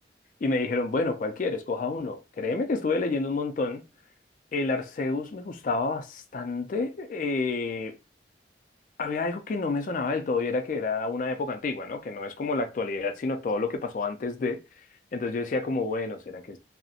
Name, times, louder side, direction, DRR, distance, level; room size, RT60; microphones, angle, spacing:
voice 1, 0.4-3.8 4.5-8.0 9.0-14.6 15.1-16.6, left 3 dB, 45° left, 0.4 m, -29 dB
2.7 x 2.0 x 2.4 m
head